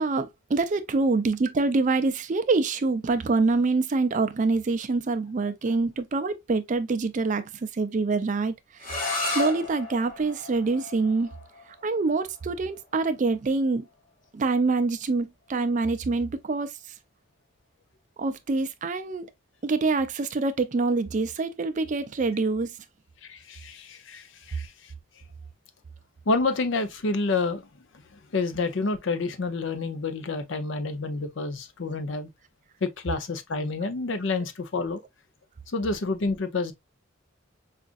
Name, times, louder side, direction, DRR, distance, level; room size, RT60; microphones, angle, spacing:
voice 1, 0.0-8.5 8.8-9.1 9.3-11.3 11.8-13.9 14.3-16.7 18.2-19.3 19.6-22.7, right 3 dB, 35° right, 0.4 m, -25 dB
sound 1, 8.8-14.5, left 2 dB, 40° left, 1.2 m, -35 dB
voice 2, 23.2-24.9 26.3-27.6 28.3-32.3 32.8-35.0 35.7-36.7, left 3 dB, 60° left, 0.6 m, -28 dB
4.9 x 2.4 x 2.4 m
head